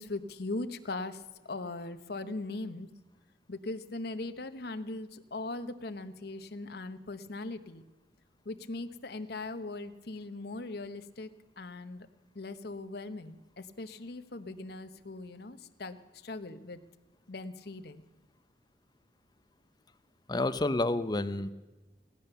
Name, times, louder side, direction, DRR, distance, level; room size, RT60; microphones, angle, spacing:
voice 1, 0.0-2.9 3.5-7.8 8.4-12.1 12.3-16.8 17.3-18.0, left 2 dB, 60° left, 10 dB, 1.0 m, -40 dB
voice 2, 20.3-21.5, left 2 dB, 25° left, 11 dB, 0.7 m, -29 dB
17.5 x 10.5 x 6.8 m, 1.2 s
head